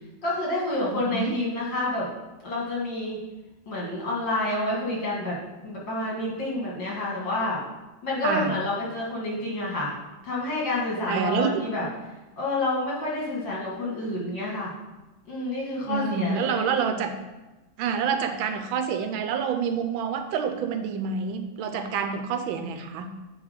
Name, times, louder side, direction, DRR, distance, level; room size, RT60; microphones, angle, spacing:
voice 1, 0.2-2.1 2.4-3.2 3.7-5.4 5.6-7.6 8.0-10.0 10.2-11.9 12.4-14.7 15.3-16.7, left 2 dB, 65° left, -4 dB, 2.5 m, -29 dB
voice 2, 0.9-1.3 8.2-8.6 11.1-11.7 15.9-17.1 17.8-23.1, right 6 dB, 80° right, 7 dB, 1.4 m, -27 dB
8.8 x 3.4 x 5.0 m, 1.1 s
omnidirectional pair, 2.2 m